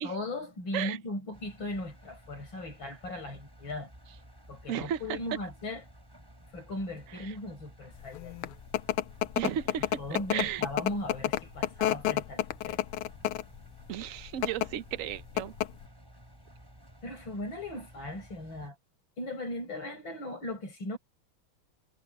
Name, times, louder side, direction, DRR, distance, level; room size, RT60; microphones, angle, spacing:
voice 1, 0.0-3.9 4.5-5.8 6.5-8.5 10.0-12.8 17.0-18.8 19.2-21.0, left 1 dB, 60° left, 7.5 m, -38 dB
Engine, 1.3-18.7, equal, 10° right, 6.0 m, -54 dB
voice 2, 4.7-5.2 9.4-9.9 10.3-10.6 13.9-15.5, right 10 dB, 60° right, 0.9 m, -34 dB
sound 1, 8.1-13.6 14.3-14.7 15.0-15.1 15.4-15.9, left 13 dB, 90° left, 1.6 m, -29 dB
omnidirectional pair, 2.3 m